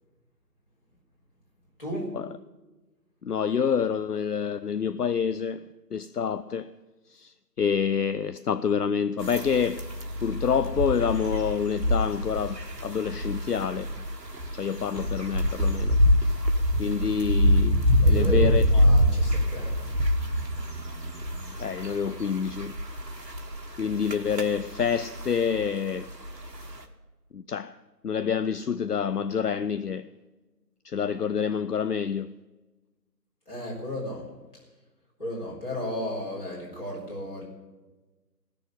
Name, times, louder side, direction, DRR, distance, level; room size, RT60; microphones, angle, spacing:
voice 1, 1.8-2.1 18.0-19.8 33.5-34.2 35.2-37.4, left 1 dB, 35° left, 4.1 m, -34 dB
voice 2, 3.2-5.6 5.9-6.7 7.1-9.8 10.2-13.9 14.5-16.0 16.8-18.6 21.6-22.7 23.8-26.1 27.3-27.8 28.0-30.1 30.8-32.3, left 7 dB, 70° left, 0.5 m, -27 dB
sound 1, 9.2-26.8, equal, 75° right, 1.6 m, -26 dB
14.5 x 6.8 x 9.5 m
figure-of-eight pair, 175°, 49 cm